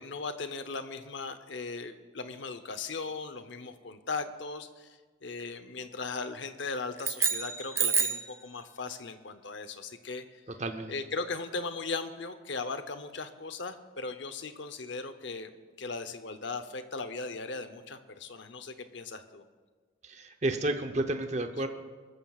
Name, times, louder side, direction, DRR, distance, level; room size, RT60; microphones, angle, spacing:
voice 1, 0.0-10.4 10.9-19.4, left 4 dB, 65° left, 10 dB, 0.8 m, -38 dB
sound 1, 7.0-8.4, right 6 dB, 15° right, 0.4 m, -28 dB
voice 2, 10.6-10.9 20.0-21.7, right 2 dB, 35° right, 7 dB, 0.8 m, -31 dB
22.0 x 13.5 x 2.4 m, 1.5 s
head